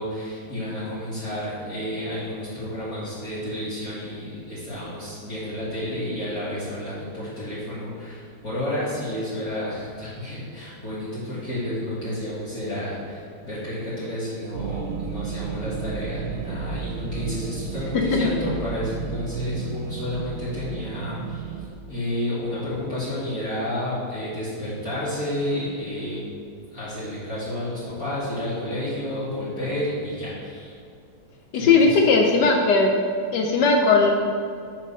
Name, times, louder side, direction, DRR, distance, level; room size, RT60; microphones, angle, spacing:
voice 1, 0.0-21.6 21.9-26.2 26.7-30.7 31.5-32.2, left 1 dB, 45° left, -11 dB, 2.2 m, -31 dB
sound 1, 14.5-21.7, right 6 dB, 70° right, 0.9 m, -32 dB
voice 2, 17.9-18.3 31.5-33.0 33.3-34.1, left 4 dB, 70° left, 1 dB, 1.1 m, -18 dB
7.2 x 4.5 x 5.5 m, 2.4 s
omnidirectional pair, 2.3 m